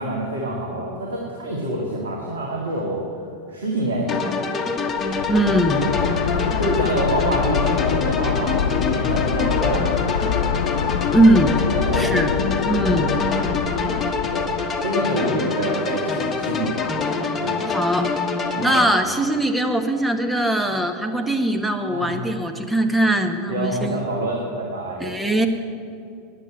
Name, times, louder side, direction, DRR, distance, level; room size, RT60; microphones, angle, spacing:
voice 1, 0.0-3.0 3.5-4.4 6.6-9.9 11.7-12.1 13.0-13.8 14.3-14.5 14.8-16.8 17.4-17.7 18.5-19.1 21.0-21.1 21.9-22.2 23.5-25.2, right 1 dB, 80° right, -2 dB, 1.9 m, -27 dB
sound 1, 4.1-18.8, left 4 dB, 25° left, 1.5 m, -25 dB
sound 2, 5.0-14.8, left 8 dB, 75° left, 0.3 m, -25 dB
voice 2, 5.3-5.8 11.1-11.5 11.9-12.3 12.7-13.1 17.7-18.1 18.6-24.0 25.0-25.5, right 1 dB, 5° right, 5 dB, 1.3 m, -20 dB
9.8 x 8.5 x 9.7 m, 2.5 s
hypercardioid pair, 85°, 0 cm